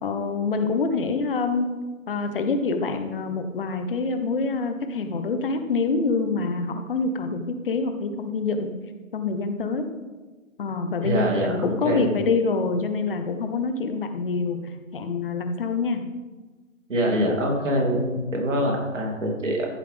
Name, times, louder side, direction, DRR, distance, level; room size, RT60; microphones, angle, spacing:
voice 1, 0.0-1.7 2.1-8.7 9.1-9.9 10.6-16.0, left 4 dB, 40° left, 7 dB, 1.1 m, -26 dB
voice 2, 11.0-12.1 16.9-19.7, equal, 65° right, -1 dB, 3.2 m, -24 dB
14.0 x 7.2 x 3.6 m, 1.3 s
figure-of-eight pair, 145°, 41 cm